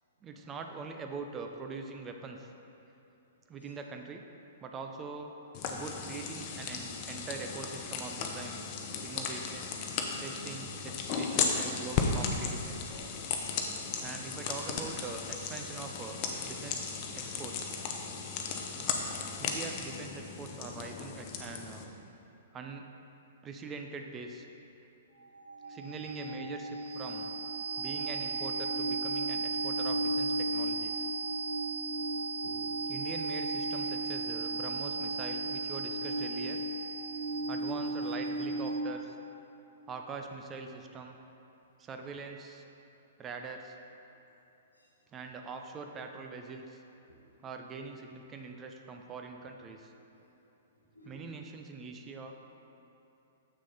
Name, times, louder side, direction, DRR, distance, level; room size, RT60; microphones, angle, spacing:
voice 1, 0.2-2.5 3.5-4.3 4.6-5.3 5.7-8.6 9.0-9.7 10.2-12.9 14.0-16.2 16.5-16.8 17.1-17.8 19.4-21.9 22.5-22.9 23.4-24.5 25.7-27.3 27.8-31.1 32.9-36.6 37.5-39.2 39.9-41.2 41.8-42.6 43.2-43.8 45.1-46.8 47.4-49.9 51.0-52.3, right 4 dB, 20° right, 4 dB, 0.5 m, -43 dB
sound 1, 5.5-21.8, left 5 dB, 35° left, 0.7 m, -36 dB
sound 2, 25.2-39.1, right 2 dB, 65° right, 0.7 m, -34 dB
voice 2, 32.3-32.7 37.0-37.5 44.7-44.9 47.1-47.2 50.1-50.2 50.9-51.4, equal, 80° left, -2 dB, 1.4 m, -56 dB
7.4 x 6.1 x 4.1 m, 3.0 s
figure-of-eight pair, 110°, 0 cm